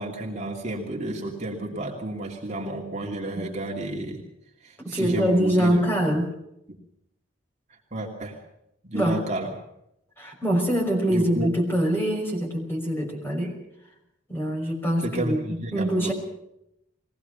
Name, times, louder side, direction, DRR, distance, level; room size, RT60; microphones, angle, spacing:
voice 1, 0.0-4.2 4.6-5.8 7.9-8.4 8.8-9.6 11.1-11.5 15.0-16.1, right 1 dB, 35° right, -1 dB, 2.7 m, -31 dB
voice 2, 4.8-6.3 8.9-9.2 10.2-13.6 14.3-15.4 15.7-16.1, equal, 10° left, 1 dB, 5.8 m, -24 dB
22.5 x 18.5 x 6.9 m, 0.80 s
head